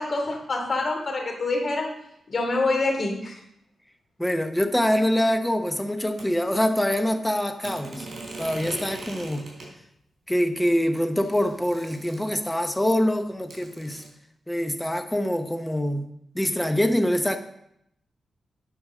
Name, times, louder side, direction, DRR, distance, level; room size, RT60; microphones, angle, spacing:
voice 1, 0.0-1.9 2.3-3.4, left 2 dB, 45° left, 1 dB, 2.8 m, -26 dB
voice 2, 4.2-8.1 8.4-9.5 10.3-14.0 14.5-16.1 16.3-17.4, equal, 5° left, 7 dB, 0.9 m, -24 dB
sound 1, 6.2-6.3 7.6-9.7 10.6-10.7 10.9-12.6 13.5-14.1, right 2 dB, 50° right, 3.9 m, -40 dB
9.7 x 5.3 x 6.2 m, 0.75 s
wide cardioid pair, 105°, 0 cm